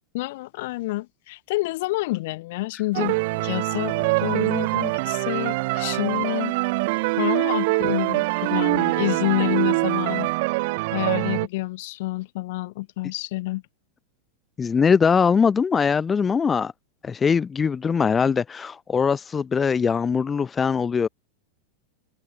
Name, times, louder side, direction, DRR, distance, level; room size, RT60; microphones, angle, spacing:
voice 1, 0.1-6.5 7.2-10.3 10.9-13.6, left 20 dB, 50° left, 0.8 m, -28 dB
sound 1, 2.9-11.5, right 25 dB, 50° right, 0.4 m, -24 dB
sound 2, 2.9-10.4, right 7 dB, 70° right, 5.0 m, -53 dB
voice 2, 14.6-16.7 17.0-21.1, left 6 dB, 20° left, 0.6 m, -21 dB
figure-of-eight pair, 90°, 0 cm